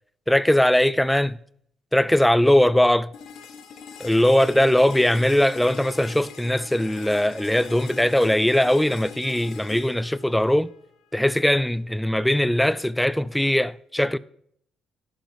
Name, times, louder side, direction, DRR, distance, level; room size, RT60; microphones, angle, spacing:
voice 1, 0.3-1.4 1.9-3.1 4.0-10.7 11.1-14.2, left 1 dB, 5° left, 0.4 m, -20 dB
sound 1, 3.1-11.1, left 7 dB, 75° left, 1.5 m, -42 dB
11.0 x 8.0 x 5.2 m
cardioid pair, 90°, 0 cm